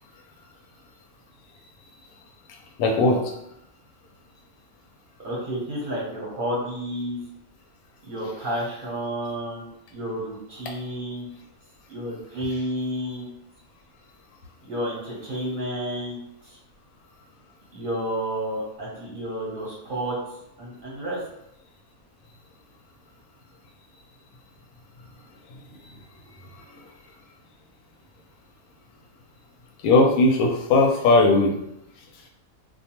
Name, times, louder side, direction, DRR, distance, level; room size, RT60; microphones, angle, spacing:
voice 1, 2.8-3.2 29.8-31.5, left 2 dB, 85° left, 2 dB, 1.0 m, -18 dB
voice 2, 5.2-7.2 8.0-9.6 9.9-11.3 11.9-13.3 14.7-16.2 16.5-16.6 17.7-20.1 20.6-21.2, equal, 45° right, -5 dB, 0.7 m, -30 dB
2.4 x 2.2 x 2.8 m, 0.80 s
omnidirectional pair, 1.5 m